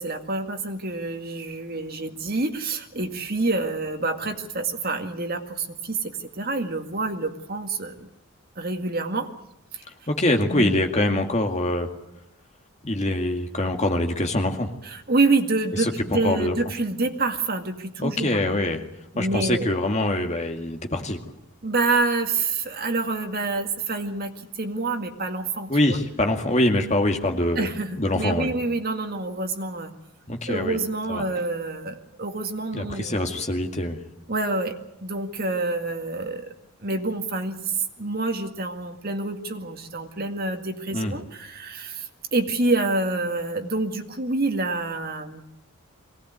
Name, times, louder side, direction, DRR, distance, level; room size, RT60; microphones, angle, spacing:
voice 1, 0.0-8.1 8.6-9.3 9.7-9.8 10.5-10.7 14.8-18.4 19.1-19.7 21.6-26.0 27.6-29.9 30.5-33.3 34.3-36.5 36.8-45.4, right 3 dB, 45° right, 5 dB, 2.0 m, -27 dB
voice 2, 10.1-11.9 12.8-14.7 15.8-16.5 18.0-18.8 19.2-21.2 25.7-27.7 27.9-28.5 30.3-30.8 31.1-31.2 32.7-34.0 40.9-41.2, left 1 dB, 30° left, 4 dB, 2.2 m, -24 dB
23.0 x 17.5 x 9.4 m, 0.86 s
head